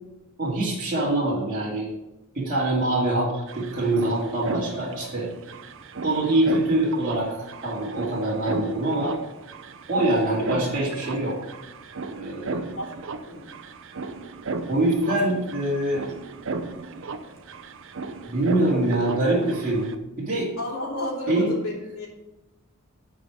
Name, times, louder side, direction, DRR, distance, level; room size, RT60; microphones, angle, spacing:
voice 1, 0.4-1.9 2.3-5.3 6.0-9.1 9.9-11.4 12.1-12.7 14.7-16.0 18.3-19.9 20.2-20.5 21.3-21.5, right 1 dB, 40° right, -8 dB, 2.5 m, -24 dB
sound 1, 2.9-3.0 3.2-20.0, right 3 dB, 60° right, 0.7 m, -35 dB
voice 2, 13.2-13.5 14.6-14.7 15.1-15.2 20.6-22.1, left 1 dB, 80° left, -3 dB, 3.1 m, -31 dB
10.0 x 5.0 x 6.0 m, 0.99 s
head